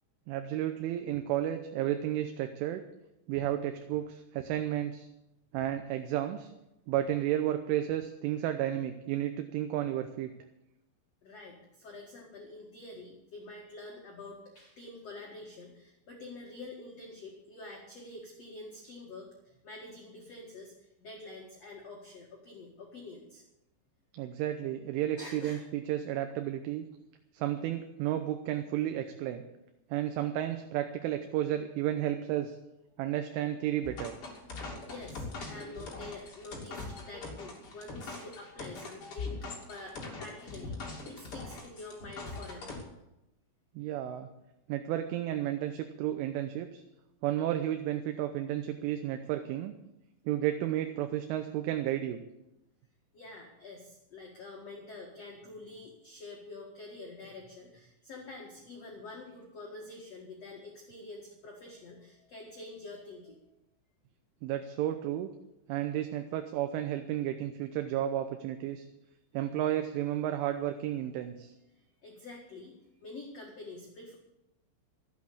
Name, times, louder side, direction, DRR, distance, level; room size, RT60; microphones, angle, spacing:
voice 1, 0.3-2.8 3.3-5.1 5.5-6.5 6.9-10.3 24.1-26.9 27.3-29.4 29.9-32.6 33.0-34.1 43.8-44.3 44.7-46.8 47.2-49.7 50.3-52.2 64.4-65.3 65.7-68.9 69.3-71.5, right 12 dB, 80° right, 7 dB, 3.2 m, -32 dB
voice 2, 11.2-23.4 25.2-25.6 34.8-42.7 53.1-63.4 71.7-74.2, left 2 dB, 60° left, -1 dB, 1.6 m, -47 dB
sound 1, 33.8-42.8, left 3 dB, 35° left, 2.7 m, -41 dB
14.5 x 8.5 x 8.4 m, 0.92 s
omnidirectional pair, 5.9 m